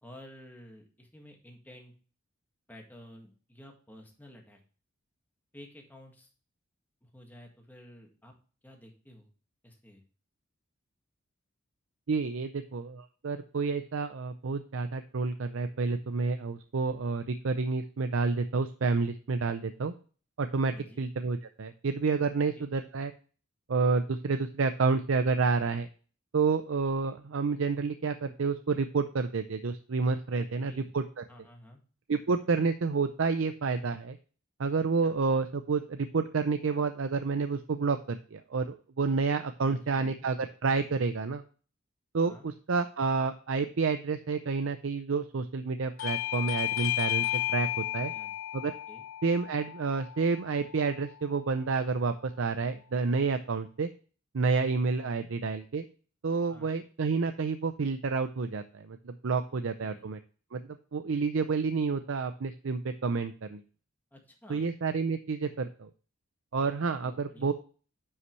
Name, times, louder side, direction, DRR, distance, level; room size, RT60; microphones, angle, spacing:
voice 1, 0.0-1.9 2.7-4.6 5.5-6.3 7.0-8.3 8.6-9.3 9.6-10.0 20.7-21.1 22.6-22.7 30.4-30.9 31.3-31.8 35.0-35.2 39.6-40.3 42.2-42.5 48.0-48.3 48.9-49.1 55.0-55.3 56.5-56.7 59.8-60.0 64.1-64.6 67.0-67.5, equal, 10° left, 1 dB, 1.7 m, -52 dB
voice 2, 12.1-19.9 20.4-23.1 23.7-25.9 26.3-31.2 32.1-34.2 34.6-41.4 42.1-47.7 47.9-48.1 48.5-48.7 49.2-53.9 54.3-55.9 56.2-60.2 60.5-60.6 60.9-63.6 64.5-65.9 66.5-67.5, right 4 dB, 65° right, 9 dB, 0.5 m, -29 dB
Bell / Doorbell, 46.0-51.2, left 16 dB, 65° left, 0.5 m, -33 dB
9.7 x 5.6 x 3.1 m, 0.39 s
head